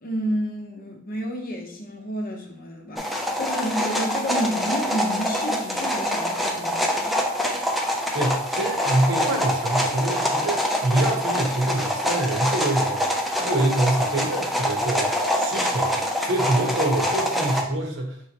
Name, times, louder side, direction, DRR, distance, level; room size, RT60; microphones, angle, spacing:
voice 1, 0.0-7.2, equal, 45° left, 2 dB, 0.7 m, -30 dB
sound 1, 3.0-17.6, equal, ahead, 0.4 m, -25 dB
voice 2, 8.1-18.2, right 1 dB, 60° right, 1 dB, 0.9 m, -25 dB
4.5 x 3.2 x 2.8 m, 0.64 s
head